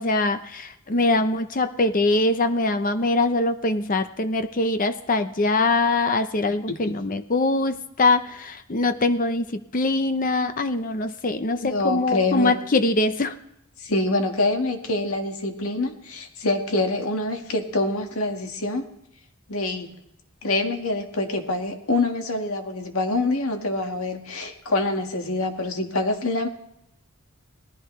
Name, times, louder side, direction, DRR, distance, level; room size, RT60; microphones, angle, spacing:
voice 1, 0.0-13.4, left 2 dB, 40° left, 9 dB, 0.7 m, -23 dB
voice 2, 11.4-12.6 13.8-18.9 19.5-19.9 20.4-26.5, left 2 dB, 80° left, 4 dB, 1.9 m, -25 dB
19.5 x 15.0 x 3.3 m, 0.79 s
head